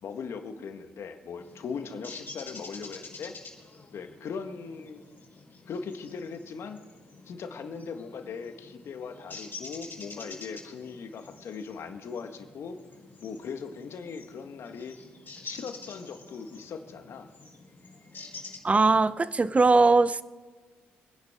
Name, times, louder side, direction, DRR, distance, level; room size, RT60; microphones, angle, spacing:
voice 1, 0.0-3.4 3.9-5.0 5.7-6.8 7.2-12.8 13.2-14.9 15.4-17.3, left 5 dB, 60° left, 7 dB, 1.5 m, -39 dB
sound 1, 1.4-18.6, left 3 dB, 40° left, 4.2 m, -48 dB
voice 2, 18.6-20.2, right 3 dB, 25° right, 16 dB, 0.7 m, -20 dB
26.5 x 10.5 x 3.7 m, 1.4 s
hypercardioid pair, 55°, 5 cm